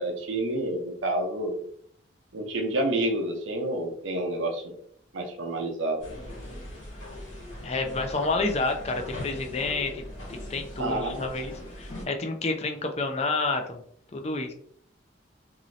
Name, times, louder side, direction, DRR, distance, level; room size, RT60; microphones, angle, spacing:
voice 1, 0.0-1.6 2.3-4.8 5.1-6.1 10.8-11.3, right 1 dB, 85° right, 3 dB, 0.7 m, -29 dB
sound 1, 6.0-12.0, left 1 dB, 80° left, 1.3 m, -40 dB
voice 2, 7.6-10.0 10.3-11.5 11.8-13.8 14.1-14.5, left 3 dB, 35° left, 4 dB, 0.4 m, -29 dB
3.0 x 2.7 x 2.6 m, 0.62 s
head